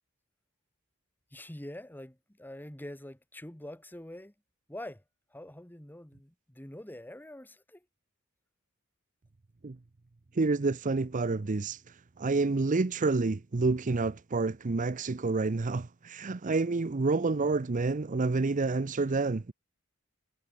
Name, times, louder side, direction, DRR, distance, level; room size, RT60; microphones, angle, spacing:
voice 1, 1.3-4.3 4.7-5.0 5.3-7.8, left 1 dB, 10° left, 1.7 m, -45 dB
voice 2, 10.3-11.8 12.2-19.5, right 3 dB, 35° right, 0.6 m, -28 dB
head